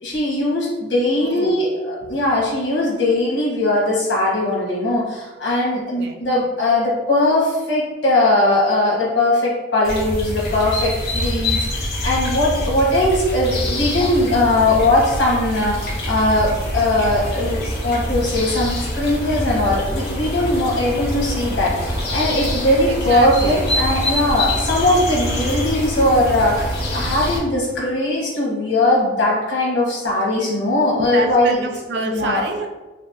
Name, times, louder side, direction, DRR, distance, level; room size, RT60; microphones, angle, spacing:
voice 1, 0.0-31.6 32.1-32.4, left 1 dB, 90° left, -5 dB, 1.3 m, -19 dB
voice 2, 1.2-1.7 2.0-2.1 5.7-6.3 13.8-14.6 22.9-23.7 31.0-32.7, right 3 dB, 65° right, 4 dB, 0.4 m, -29 dB
sound 1, 9.8-27.4, left 1 dB, 60° left, 1.2 m, -25 dB
4.2 x 2.1 x 2.7 m, 1.2 s
head